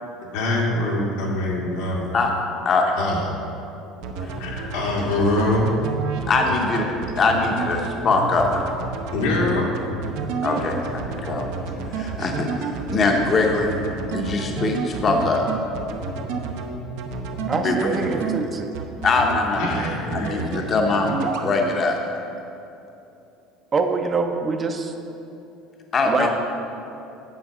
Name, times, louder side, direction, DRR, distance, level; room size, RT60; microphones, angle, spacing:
voice 1, 0.2-2.2 3.0-3.3 4.4-5.7 6.5-6.6 9.1-9.7 10.6-10.7 13.2-13.3 17.9-18.0 19.5-20.7 21.7-21.8, left 2 dB, 85° left, -3 dB, 1.9 m, -24 dB
sound 1, 4.0-18.4 18.7-19.4 19.7-20.6 20.9-21.5, right 5 dB, 75° right, 0.8 m, -29 dB
voice 2, 6.3-6.9 7.1-8.6 10.4-10.8 11.1-11.5 11.9-15.4 17.5-18.3 19.0-19.8 20.1-22.0 25.9-26.3, left 3 dB, 30° left, 2 dB, 0.8 m, -22 dB
voice 3, 17.5-18.7 23.7-24.9 26.0-26.3, right 4 dB, 25° right, 5 dB, 0.5 m, -24 dB
8.8 x 4.5 x 6.6 m, 2.8 s
cardioid pair, 140°, 0 cm